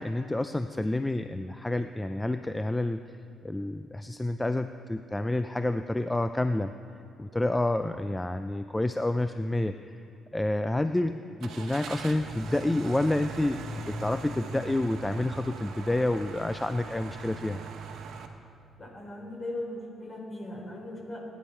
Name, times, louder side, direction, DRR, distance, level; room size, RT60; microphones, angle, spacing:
voice 1, 0.0-3.0 3.4-6.7 7.2-10.0 10.3-17.6, left 1 dB, 10° left, 9 dB, 0.4 m, -29 dB
Car / Engine starting, 11.4-18.3, right 3 dB, 75° right, 1.2 m, -40 dB
voice 2, 18.8-21.2, left 1 dB, 40° left, -1 dB, 4.4 m, -38 dB
21.5 x 10.5 x 4.5 m, 2.5 s
cardioid pair, 90°, 0 cm